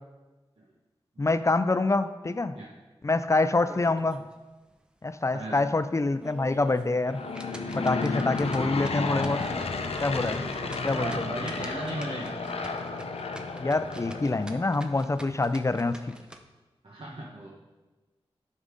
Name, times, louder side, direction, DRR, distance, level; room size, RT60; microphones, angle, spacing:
voice 1, 1.2-2.6 3.0-4.2 5.0-7.2 7.8-9.4 10.0-10.4 10.8-11.3 13.6-16.1, left 2 dB, 30° left, 12 dB, 0.4 m, -26 dB
sound 1, 3.6-4.3 4.7-4.8 5.3-5.4 6.0-16.4, right 1 dB, 10° right, 0.8 m, -47 dB
Aircraft / Engine, 7.0-15.0, left 4 dB, 80° left, 0.6 m, -32 dB
voice 2, 10.2-12.4 16.8-17.5, right 2 dB, 65° right, -4 dB, 1.2 m, -37 dB
9.8 x 5.4 x 3.7 m, 1.2 s
wide cardioid pair, 60°, 10 cm